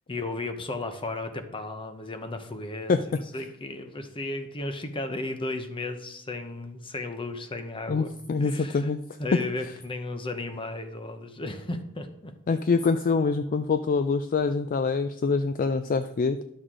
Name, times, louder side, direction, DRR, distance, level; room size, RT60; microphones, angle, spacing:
voice 1, 0.1-2.9 3.3-8.1 8.4-8.9 9.2-12.3, left 2 dB, 25° left, 8 dB, 0.8 m, -34 dB
voice 2, 7.9-9.0 12.5-16.4, left 4 dB, 40° left, 10 dB, 0.3 m, -25 dB
11.5 x 6.4 x 3.7 m, 0.78 s
head